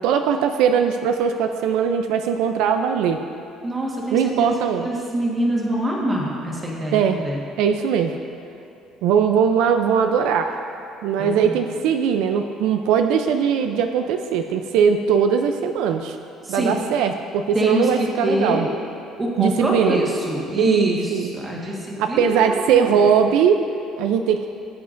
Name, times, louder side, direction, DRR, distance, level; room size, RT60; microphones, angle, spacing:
voice 1, 0.0-3.2 4.1-4.9 6.9-7.2 7.6-8.1 9.0-10.5 11.0-16.2 16.5-18.7 19.4-20.0 20.5-21.3 21.6-21.7 22.0-23.6 24.0-24.4, right 7 dB, 80° right, 6 dB, 0.4 m, -20 dB
voice 2, 3.6-7.4 11.2-11.6 16.4-16.7 17.5-18.7 19.2-23.0, equal, 15° right, -3 dB, 1.5 m, -25 dB
16.5 x 8.0 x 2.6 m, 2.8 s
cardioid pair, 170°, 0 cm